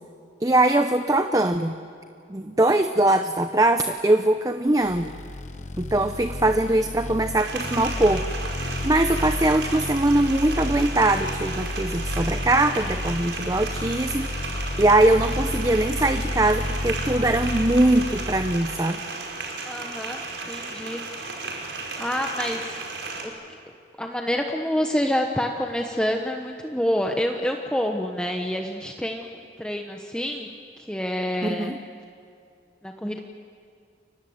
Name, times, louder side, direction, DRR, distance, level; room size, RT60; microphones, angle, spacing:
voice 1, 0.4-1.7 2.3-5.1 5.8-8.3 8.5-19.0 31.5-31.8, right 2 dB, 20° right, 8 dB, 0.7 m, -22 dB
sound 1, 4.8-18.6, left 2 dB, 40° left, 1.0 m, -31 dB
sound 2, 7.4-23.2, right 3 dB, 85° right, 5.3 m, -34 dB
voice 2, 19.6-21.7 22.0-22.8 23.2-23.3 24.0-30.5 30.8-31.8 32.8-33.2, equal, 5° left, 2 dB, 1.1 m, -28 dB
30.0 x 23.5 x 8.0 m, 2.4 s
head